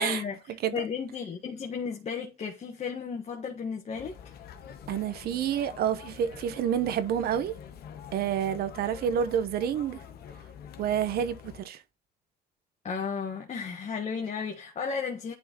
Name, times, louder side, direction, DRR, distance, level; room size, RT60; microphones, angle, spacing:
voice 1, 0.0-4.2 12.8-15.3, left 6 dB, 40° left, 1.5 m, -34 dB
sound 1, 3.9-11.6, left 8 dB, 70° left, 1.4 m, -46 dB
voice 2, 4.9-7.5 8.1-10.0 10.8-11.8, right 9 dB, 65° right, 1.1 m, -28 dB
10.5 x 4.2 x 3.0 m
cardioid pair, 110°, 17 cm